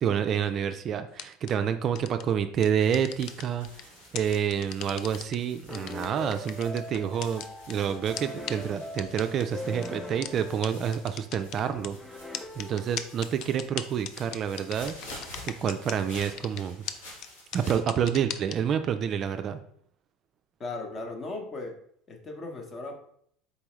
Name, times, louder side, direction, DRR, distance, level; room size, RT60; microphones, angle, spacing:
voice 1, 0.0-12.2 12.6-14.9 15.5-16.8 17.5-19.6, right 8 dB, 45° right, 9 dB, 0.3 m, -28 dB
sound 1, 1.1-1.5 1.9-2.2 2.6-3.8 4.1-5.3 5.7-7.7 8.2-8.3 8.5-8.6 9.0-9.4 9.8-9.9 10.2-10.3 10.6-10.7 10.9-11.9 12.3-15.9 16.2-16.6 16.9-17.0 17.2-17.3 17.5-18.5, left 10 dB, 55° left, 0.3 m, -36 dB
sound 2, 2.7-17.8, left 1 dB, 90° left, 1.8 m, -49 dB
sound 3, 5.7-13.4, left 1 dB, 10° left, 0.6 m, -42 dB
voice 2, 20.6-21.8 22.1-22.9, left 3 dB, 35° left, 3 dB, 0.9 m, -37 dB
4.1 x 3.5 x 3.0 m, 0.65 s
supercardioid pair, 100°, 0 cm